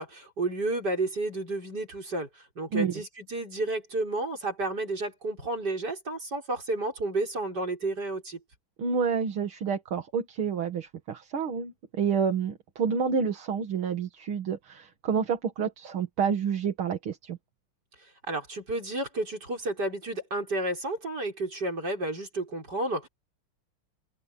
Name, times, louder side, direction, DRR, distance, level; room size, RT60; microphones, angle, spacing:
voice 1, 0.0-2.3 2.6-8.4 18.3-23.1, right 2 dB, 50° right, 6.7 m, -31 dB
voice 2, 8.8-17.4, right 6 dB, 75° right, 2.6 m, -29 dB
open air
omnidirectional pair, 2.3 m